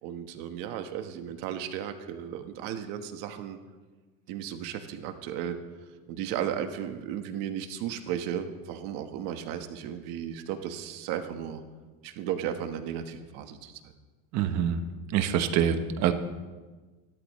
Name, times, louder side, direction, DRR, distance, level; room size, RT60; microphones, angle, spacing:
voice 1, 0.0-3.6 4.3-5.5 6.1-11.6 12.0-13.7, right 9 dB, 75° right, 7 dB, 1.4 m, -35 dB
voice 2, 14.3-14.8 15.1-16.1, right 9 dB, 55° right, 9 dB, 1.2 m, -25 dB
26.5 x 12.5 x 3.2 m, 1.3 s
cardioid pair, 150°, 33 cm